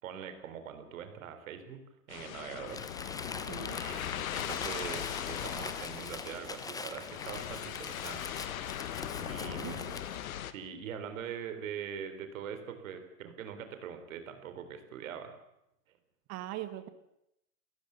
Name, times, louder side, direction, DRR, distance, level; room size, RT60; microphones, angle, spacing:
voice 1, 0.0-1.8 2.1-2.8 3.8-8.7 9.2-9.9 10.5-15.4, right 8 dB, 55° right, 8 dB, 3.9 m, -43 dB
sound 1, 2.1-10.5, left 11 dB, 60° left, 1.5 m, -39 dB
Crumpling crinkling, 2.7-10.3, left 4 dB, 10° left, 1.0 m, -43 dB
voice 2, 3.5-3.8 9.4-10.0 16.3-16.9, right 14 dB, 35° right, 11 dB, 2.1 m, -41 dB
29.5 x 14.5 x 7.2 m, 0.81 s
figure-of-eight pair, 105°, 47 cm